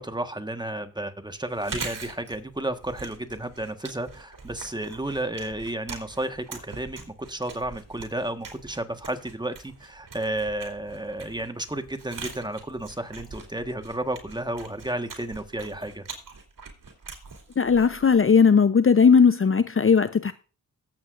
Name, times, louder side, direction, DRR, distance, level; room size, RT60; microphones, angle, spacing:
voice 1, 0.0-16.0, right 1 dB, 10° right, 1.5 m, -32 dB
Chewing mastication, 1.5-18.3, right 4 dB, 60° right, 3.2 m, -43 dB
voice 2, 17.6-20.3, left 6 dB, 35° left, 0.7 m, -18 dB
18.0 x 8.2 x 2.6 m
supercardioid pair, 40°, 37 cm